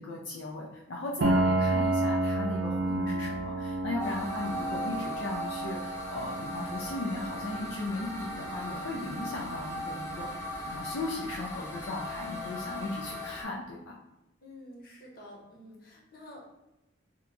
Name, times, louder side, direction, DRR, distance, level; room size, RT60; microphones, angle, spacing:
voice 1, 0.0-14.0, left 2 dB, 80° left, -2 dB, 0.5 m, -37 dB
Piano, 1.2-10.8, right 2 dB, 85° right, 0.4 m, -32 dB
sound 1, 4.0-13.4, left 1 dB, 15° left, 0.7 m, -38 dB
voice 2, 14.4-16.4, left 1 dB, 50° left, -2 dB, 0.9 m, -49 dB
2.9 x 2.2 x 3.8 m, 0.96 s
head